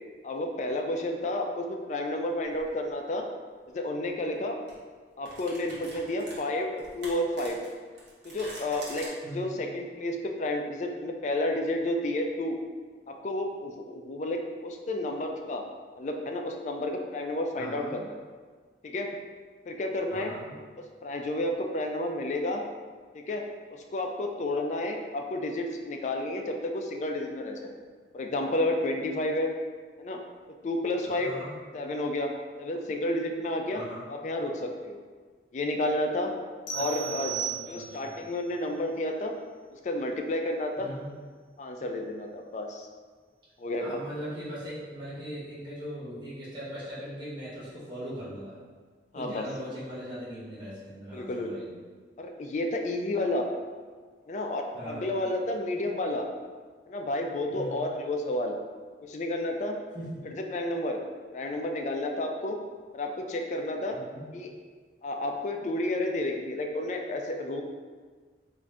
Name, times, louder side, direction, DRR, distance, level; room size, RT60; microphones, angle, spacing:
voice 1, 0.2-3.3 3.7-4.6 5.2-6.7 6.9-7.6 8.2-12.6 13.1-15.6 16.0-18.1 18.8-19.1 19.7-20.3 20.8-22.6 23.1-23.4 23.7-27.7 28.1-29.5 30.0-30.2 30.6-31.3 31.7-32.3 32.6-33.8 34.1-35.0 35.5-36.3 36.7-37.3 37.7-39.3 39.7-40.9 41.6-42.9 43.6-44.0 49.1-49.5 51.1-51.6 52.2-53.5 54.3-56.3 56.9-58.6 59.0-59.8 60.2-61.0 61.3-62.6 62.9-64.0 64.3-64.5 65.0-67.6, left 1 dB, 40° left, 3 dB, 0.3 m, -31 dB
sound 1, 2.5-2.7 4.1-4.3 4.7-4.8 5.3-9.1, right 1 dB, 65° right, 0.9 m, -45 dB
voice 2, 9.2-9.6 17.5-17.9 20.1-20.6 31.1-31.5 33.7-34.0 36.7-38.1 40.8-41.1 43.8-48.6 49.1-51.7 54.7-55.1 57.5-57.8 59.9-60.2 63.9-64.3, equal, 25° right, -10 dB, 0.9 m, -40 dB
sound 2, 36.7-38.2, right 8 dB, 85° left, 0.6 m, -35 dB
3.7 x 2.5 x 3.2 m, 1.5 s
head